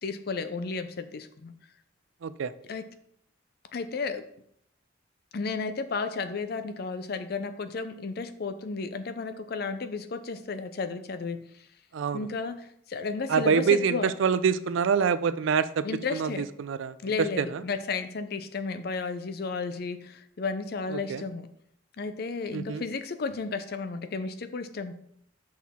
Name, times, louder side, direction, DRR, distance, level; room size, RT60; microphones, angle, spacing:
voice 1, 0.0-1.5 2.7-2.9 3.7-4.3 5.3-11.4 12.1-14.1 15.8-16.5 17.0-21.5 22.0-24.9, left 4 dB, 50° left, 11 dB, 0.4 m, -33 dB
voice 2, 2.2-2.5 11.9-12.3 13.3-15.8 16.1-16.9 17.4-17.6 20.9-21.2 22.5-22.8, right 6 dB, 70° right, 14 dB, 0.4 m, -26 dB
6.1 x 5.8 x 3.6 m, 0.71 s
head